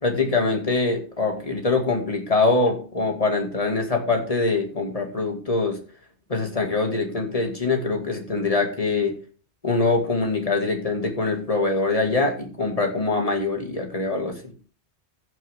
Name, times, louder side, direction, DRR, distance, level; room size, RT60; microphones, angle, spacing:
voice 1, 0.0-5.8 6.3-9.2 9.6-14.5, left 3 dB, 30° left, 3 dB, 2.3 m, -23 dB
15.0 x 7.6 x 3.6 m, 0.38 s
omnidirectional pair, 1.2 m